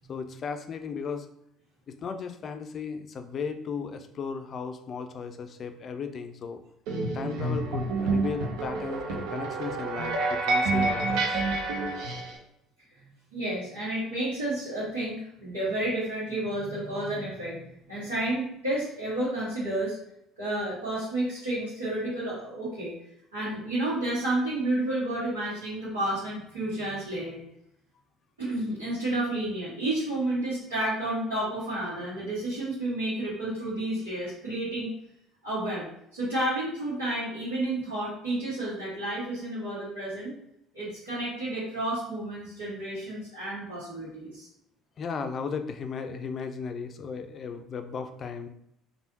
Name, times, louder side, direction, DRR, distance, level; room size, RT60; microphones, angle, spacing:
voice 1, 0.1-1.3 1.9-6.6 7.1-11.4 45.0-48.5, left 5 dB, 45° left, 8 dB, 0.4 m, -35 dB
sound 1, 6.9-12.4, right 3 dB, 65° right, 0.6 m, -28 dB
voice 2, 13.3-17.6 17.9-20.0 20.4-22.9 23.3-27.4 28.4-34.9 35.4-35.9 36.1-40.3 40.7-44.5, right 1 dB, 85° right, -12 dB, 1.3 m, -31 dB
3.3 x 2.6 x 2.7 m, 0.76 s
hypercardioid pair, 60°, 0 cm